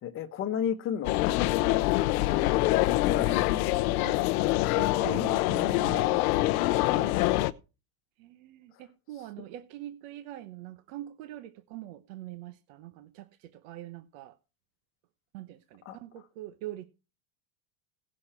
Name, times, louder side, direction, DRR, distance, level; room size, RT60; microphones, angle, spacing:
voice 1, 0.0-1.8 2.2-3.8 6.8-7.2 15.8-16.0, left 9 dB, 30° left, 1.1 m, -33 dB
sound 1, 1.0-7.5, left 18 dB, 70° left, 0.8 m, -25 dB
voice 2, 4.7-6.3 8.2-14.4 15.3-16.9, right 14 dB, 55° right, 0.9 m, -43 dB
17.0 x 6.4 x 4.4 m
supercardioid pair, 165°, 46 cm